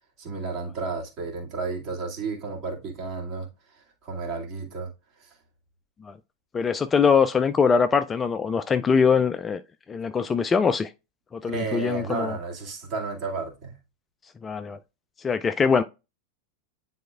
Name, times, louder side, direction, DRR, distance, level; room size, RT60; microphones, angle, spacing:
voice 1, 0.2-4.9 5.2-5.4 11.4-13.8, right 4 dB, 35° right, 2.1 m, -32 dB
voice 2, 6.5-9.6 9.9-10.9 11.3-12.4 14.4-14.8 15.2-15.8, left 6 dB, 20° left, 0.3 m, -22 dB
9.5 x 4.2 x 2.4 m
figure-of-eight pair, 90°, 0 cm